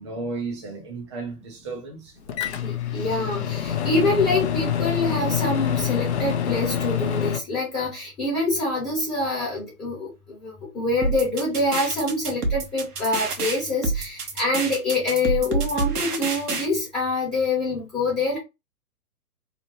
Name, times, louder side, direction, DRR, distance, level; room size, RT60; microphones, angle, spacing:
voice 1, 0.0-2.5, right 3 dB, 20° right, 0.3 m, -34 dB
Microwave oven, 2.3-7.4, left 9 dB, 50° left, 0.5 m, -26 dB
voice 2, 2.6-10.1 10.4-18.4, left 2 dB, 10° left, 0.8 m, -25 dB
sound 1, 11.0-16.7, right 3 dB, 80° right, 1.0 m, -27 dB
2.9 x 2.1 x 2.8 m
figure-of-eight pair, 125°, 46 cm